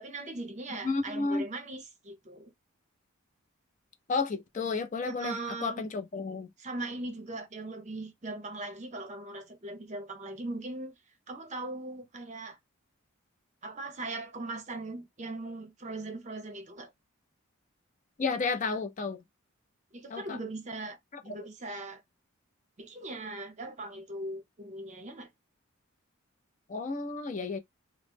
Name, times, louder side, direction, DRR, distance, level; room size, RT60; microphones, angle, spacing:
voice 1, 0.0-2.5 5.1-5.8 6.6-10.9 11.3-12.6 13.6-16.9 19.9-21.0 21.2-22.0 22.8-25.3, right 2 dB, 35° right, 0.6 m, -39 dB
voice 2, 0.7-1.4 4.1-6.5 18.2-19.2 20.1-20.4 21.3-21.4 26.7-27.6, left 4 dB, 35° left, 0.4 m, -32 dB
3.1 x 2.0 x 3.3 m
head